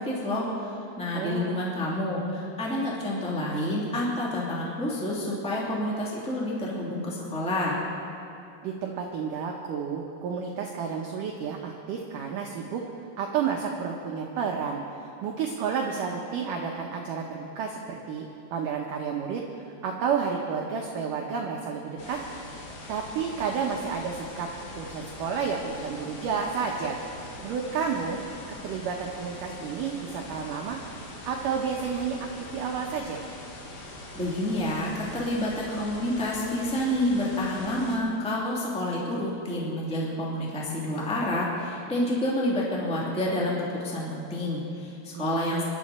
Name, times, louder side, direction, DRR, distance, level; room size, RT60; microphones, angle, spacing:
voice 1, 0.0-7.8 34.1-45.6, left 1 dB, ahead, -5 dB, 1.9 m, -29 dB
voice 2, 1.1-1.6 8.6-12.8 13.2-18.3 18.5-22.2 22.9-24.5 24.7-27.0 27.4-28.2 28.6-30.8 31.3-32.2 32.5-33.2 45.2-45.6, right 6 dB, 75° right, 0 dB, 2.0 m, -31 dB
sound 1, 22.0-38.0, left 2 dB, 60° left, 3.7 m, -43 dB
26.0 x 12.0 x 4.3 m, 2.8 s
omnidirectional pair, 5.0 m